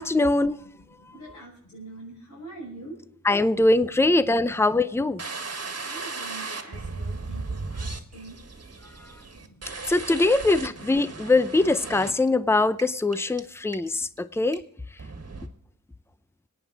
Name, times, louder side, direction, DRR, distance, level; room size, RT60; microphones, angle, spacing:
voice 1, 0.0-0.6 3.2-5.2 9.0-9.2 9.9-14.6 14.9-15.0, left 2 dB, 10° left, 14 dB, 0.5 m, -22 dB
voice 2, 0.8-3.0 3.5-3.7 4.3-8.5 9.2-9.7 10.3-10.4, right 2 dB, 65° left, -7 dB, 6.3 m, -45 dB
sound 1, 5.2-12.3 12.8-12.9 13.1-13.4 13.7-14.2 14.5-14.6 15.0-15.5, right 3 dB, 45° right, 1.7 m, -36 dB
26.5 x 9.1 x 4.0 m, 0.67 s
wide cardioid pair, 75°, 34 cm